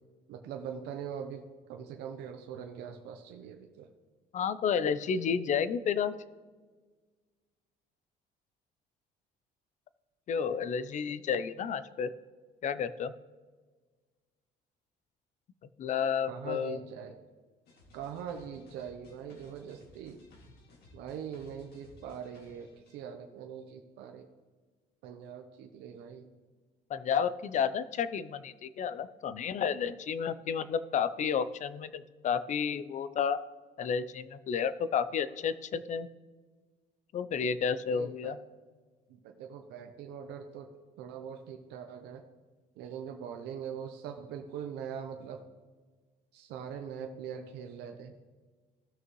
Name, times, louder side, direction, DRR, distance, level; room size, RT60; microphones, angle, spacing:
voice 1, 0.3-1.4 1.7-3.9 16.3-17.2 17.9-20.2 20.9-24.3 25.0-26.3 37.9-38.4 39.1-40.7 41.0-42.2 42.8-45.4 46.3-48.1, right 8 dB, 85° right, 4 dB, 0.8 m, -42 dB
voice 2, 4.3-6.1 10.3-12.1 12.6-13.1 15.8-16.8 26.9-33.4 33.8-36.1 37.1-38.4, left 7 dB, 45° left, 14 dB, 0.5 m, -31 dB
sound 1, 17.7-23.0, left 2 dB, 70° left, 2.3 m, -58 dB
17.0 x 6.3 x 3.1 m, 1.4 s
cardioid pair, 110°, 17 cm